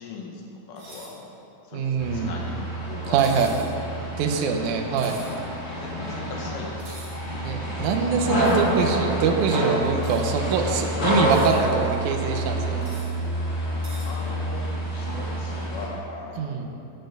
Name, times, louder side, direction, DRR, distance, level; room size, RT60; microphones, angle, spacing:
voice 1, 0.0-1.4 1.6-3.7 4.0-4.1 4.3-4.5 5.7-6.9 14.0-16.8, left 3 dB, 70° left, -1 dB, 2.3 m, -39 dB
sound 1, 0.8-1.1 3.2-3.7 5.0-5.4 6.8-7.1 8.4-8.7 10.0-10.2 11.1-11.6 12.8-13.1 13.8-14.1, right 1 dB, 35° right, 1.9 m, -43 dB
voice 2, 1.7-2.3 3.1-3.7 4.2-5.2 7.4-12.8 16.4-16.7, right 6 dB, 80° right, 2 dB, 1.8 m, -24 dB
sound 2, 2.0-15.9, right 1 dB, 40° left, 2.8 m, -27 dB
6.7 x 6.4 x 6.4 m, 2.7 s
omnidirectional pair, 4.2 m